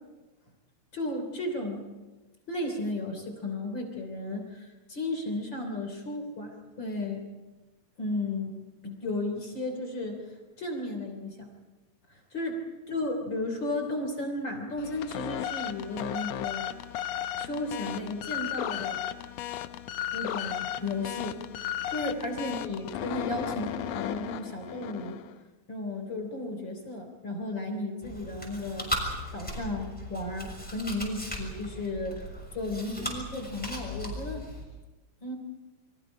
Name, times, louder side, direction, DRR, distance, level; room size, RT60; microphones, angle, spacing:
voice 1, 0.9-1.8 2.5-7.2 8.0-8.5 8.8-10.3 10.6-11.5 12.1-12.6 12.9-16.7 17.4-19.0 20.1-25.2 25.7-29.1 29.3-32.2 32.5-34.5 35.2-35.4, left 2 dB, 35° left, 3 dB, 3.7 m, -34 dB
sound 1, 14.8-25.4, left 11 dB, 80° left, 1.5 m, -35 dB
Chewing mastication, 28.0-34.6, equal, ahead, 6.1 m, -37 dB
29.5 x 24.0 x 5.0 m, 1.2 s
omnidirectional pair, 4.1 m